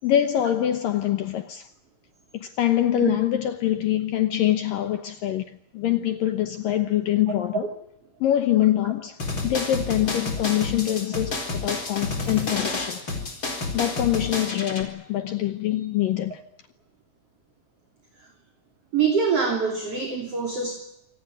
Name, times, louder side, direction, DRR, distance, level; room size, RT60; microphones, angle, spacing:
voice 1, 0.0-1.7 2.3-7.7 8.2-13.0 13.7-16.4, left 12 dB, 75° left, 2.1 m, -24 dB
sound 1, 9.2-14.8, left 3 dB, 25° left, 4.7 m, -30 dB
voice 2, 18.9-20.7, right 5 dB, 35° right, 3.6 m, -24 dB
27.0 x 18.5 x 9.3 m
omnidirectional pair, 5.4 m